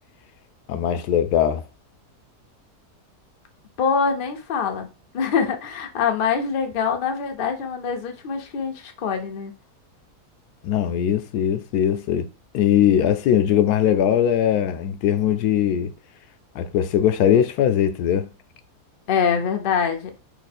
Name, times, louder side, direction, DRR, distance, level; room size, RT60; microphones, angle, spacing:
voice 1, 0.7-1.6 10.6-12.3 12.5-15.9 16.5-18.3, left 10 dB, 75° left, 1.1 m, -20 dB
voice 2, 3.8-4.9 5.1-9.5 19.1-20.1, left 6 dB, 55° left, 0.6 m, -24 dB
3.2 x 2.8 x 4.2 m
omnidirectional pair, 1.7 m